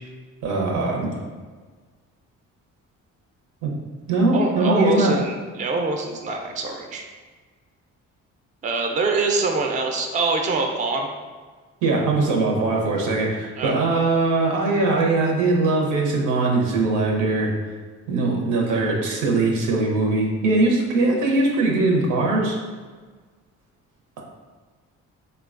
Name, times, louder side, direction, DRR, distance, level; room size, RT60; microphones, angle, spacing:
voice 1, 0.4-1.1 3.6-3.7 4.1-5.1 11.8-17.5 18.1-22.6, right 2 dB, 90° right, -1 dB, 0.7 m, -21 dB
voice 2, 4.3-7.1 8.6-11.1 13.6-13.8, right 3 dB, 25° right, 2 dB, 0.4 m, -24 dB
3.8 x 2.2 x 2.4 m, 1.4 s
cardioid pair, 90°, 30 cm